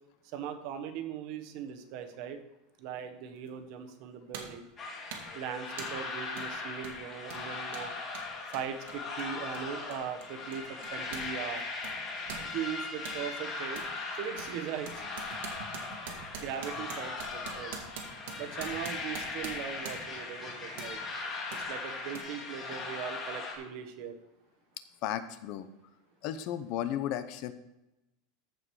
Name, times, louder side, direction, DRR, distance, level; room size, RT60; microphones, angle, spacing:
voice 1, 0.3-2.4 2.8-4.7 5.3-7.9 8.5-11.6 12.4-13.8 14.2-15.0 16.4-17.8 18.4-21.0 21.5-24.2, right 8 dB, 50° right, 8 dB, 1.2 m, -39 dB
sound 1, 3.5-3.6 4.3-4.6 5.1-5.4 5.8-6.0 6.4-6.5 6.8-11.3 11.6-13.2 13.7-13.9 14.4-20.2 20.8-21.0 21.5-21.6 22.1-22.2, right 6 dB, 80° right, 2.0 m, -45 dB
sound 2, 4.8-23.5, left 3 dB, 25° left, 2.2 m, -39 dB
voice 2, 25.0-25.7 26.2-27.5, left 11 dB, 45° left, 12 dB, 0.7 m, -34 dB
14.5 x 5.1 x 4.7 m, 0.94 s
supercardioid pair, 170°, 0 cm